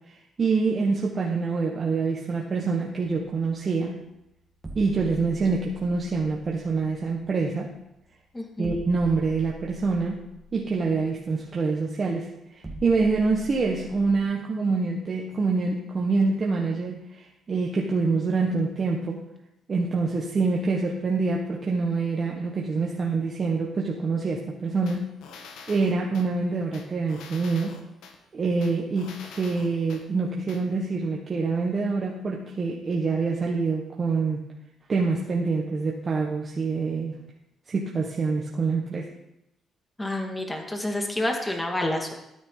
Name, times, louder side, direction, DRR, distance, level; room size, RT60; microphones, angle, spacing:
voice 1, 0.4-4.0 4.7-7.7 8.6-10.2 10.5-19.2 19.7-25.1 25.7-27.8 28.3-34.4 34.9-37.1 37.7-39.1, right 4 dB, 40° right, -2 dB, 1.5 m, -26 dB
sound 1, 3.3-14.2, left 1 dB, 20° right, 2.0 m, -44 dB
voice 2, 8.3-8.7 40.0-42.1, left 1 dB, 15° left, 2 dB, 2.3 m, -29 dB
sound 2, 24.9-26.3 26.7-28.1 28.6-30.0 30.5-30.6, left 5 dB, 85° left, 1.4 m, -45 dB
13.0 x 9.5 x 4.0 m, 0.86 s
cardioid pair, 90°, 0 cm